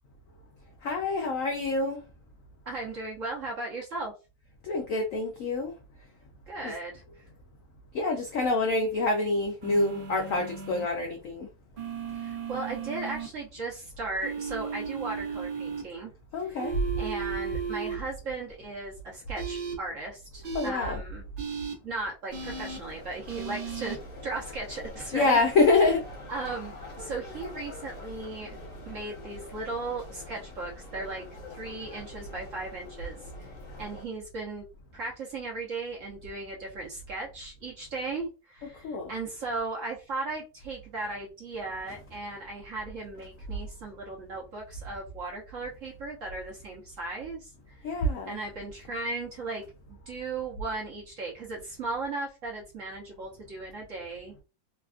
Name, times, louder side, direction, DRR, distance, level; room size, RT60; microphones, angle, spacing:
voice 1, 0.8-2.0 4.6-5.7 6.6-6.7 7.9-11.5 16.3-16.8 20.5-21.0 25.1-26.0 38.8-39.1 47.8-48.4, left 3 dB, 90° left, 0.7 m, -26 dB
voice 2, 2.7-4.1 6.5-7.2 12.1-16.1 16.4-16.7 17.0-21.2 21.8-25.4 26.3-28.5 28.8-31.2 31.5-33.5 33.8-34.7 34.9-47.8 48.3-54.3, right 3 dB, 55° right, 0.9 m, -37 dB
sound 1, 9.6-10.8 11.8-13.3 14.2-15.8 16.6-17.9 19.3-19.7 20.4-20.7 21.4-21.7 22.3-22.8 23.3-24.0, right 6 dB, 75° right, 0.5 m, -35 dB
sound 2, 22.3-34.1, left 1 dB, 50° left, 1.3 m, -44 dB
3.3 x 2.3 x 2.4 m
omnidirectional pair, 2.0 m